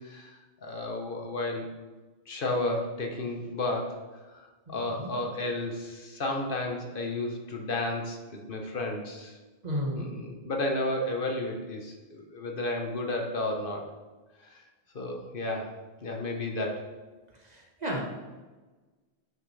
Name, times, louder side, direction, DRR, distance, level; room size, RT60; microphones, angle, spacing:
voice 1, 0.6-1.7 2.3-4.0 4.7-9.3 9.9-13.8 14.9-15.7 16.0-16.8, left 2 dB, 60° left, 1 dB, 1.2 m, -32 dB
voice 2, 4.7-5.1 9.6-10.1 17.8-18.0, equal, 45° right, -2 dB, 1.4 m, -32 dB
9.1 x 5.9 x 3.3 m, 1.2 s
omnidirectional pair, 1.0 m